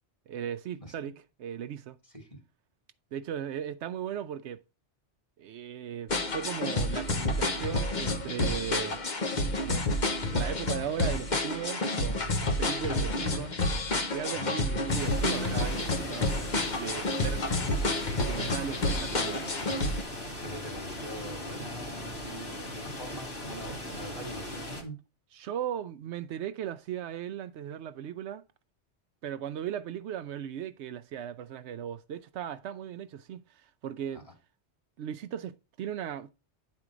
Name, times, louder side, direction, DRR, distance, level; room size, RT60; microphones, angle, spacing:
voice 1, 0.3-2.0 3.1-4.6 5.4-9.0 9.6-10.0 10.3-13.6 13.9-17.8 18.1-19.4 25.3-28.4 29.2-34.2 35.0-36.3, right 9 dB, 75° right, 0.9 m, -37 dB
sound 1, 6.1-20.0, left 2 dB, 45° left, 1.0 m, -29 dB
sound 2, 14.9-24.8, left 1 dB, 60° left, 2.5 m, -39 dB
voice 2, 19.4-24.9 34.1-34.2, equal, 30° left, 2.7 m, -43 dB
9.5 x 4.4 x 4.9 m
omnidirectional pair, 1.2 m